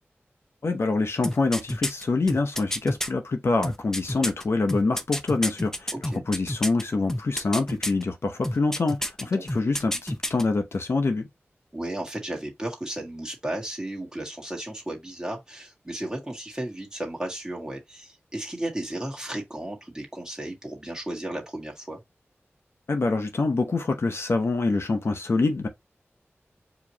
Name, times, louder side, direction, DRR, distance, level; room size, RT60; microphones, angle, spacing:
voice 1, 0.6-5.9 6.3-11.3 22.9-25.7, left 3 dB, 65° left, 0.8 m, -25 dB
sound 1, 1.2-3.1 3.6-6.8 7.1-8.0 8.4-9.2 9.5-10.4 10.7-10.8, left 1 dB, 10° left, 0.6 m, -29 dB
voice 2, 5.9-6.2 9.3-9.4 11.7-22.0, right 1 dB, 15° right, 1.8 m, -34 dB
4.8 x 3.0 x 2.8 m
wide cardioid pair, 90°, 5 cm